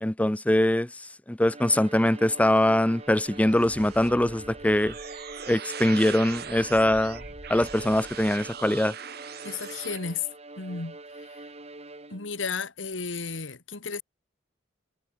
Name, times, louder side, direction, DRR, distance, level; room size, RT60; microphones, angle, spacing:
voice 1, 0.0-4.9 5.5-7.2 7.5-8.9, left 1 dB, 10° left, 0.6 m, -23 dB
Bowed string instrument, 1.4-12.5, right 2 dB, 35° right, 5.4 m, -44 dB
sound 1, 2.4-10.0, right 6 dB, 60° right, 4.9 m, -41 dB
voice 2, 9.4-10.3 10.6-11.5 12.1-14.0, left 5 dB, 90° left, 2.4 m, -34 dB
head